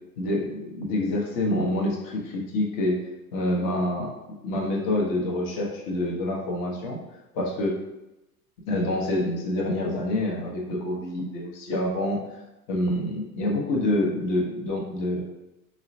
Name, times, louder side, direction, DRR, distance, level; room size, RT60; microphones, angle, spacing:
voice 1, 0.2-3.0 3.3-4.1 4.4-7.0 7.3-7.8 8.7-12.2 12.7-15.2, left 1 dB, 45° left, -1 dB, 0.9 m, -27 dB
4.7 x 2.1 x 2.6 m, 0.94 s
figure-of-eight pair, 75°, 46 cm